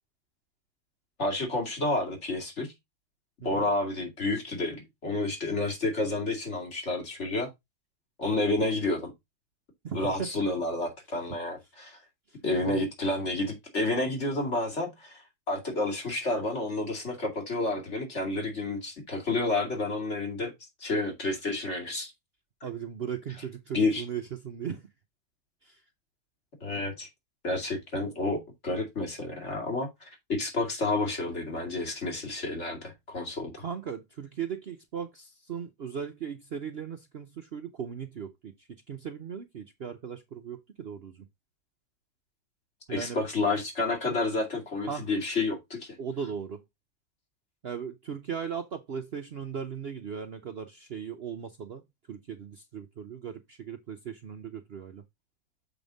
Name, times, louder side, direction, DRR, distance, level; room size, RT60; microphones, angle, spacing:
voice 1, 1.2-2.7 3.4-7.5 8.2-9.1 9.9-12.0 12.4-20.5 20.8-22.1 23.7-24.0 26.6-27.1 27.4-33.5 42.9-46.0, left 2 dB, 45° left, 2.7 m, -30 dB
voice 2, 9.8-10.3 12.6-12.8 22.6-24.8 25.6-25.8 33.6-38.5 38.9-41.2 42.9-43.3 44.9-45.1 46.0-46.6 47.6-51.8 52.1-55.0, right 7 dB, 50° right, 0.8 m, -37 dB
7.1 x 5.4 x 3.9 m
omnidirectional pair, 1.7 m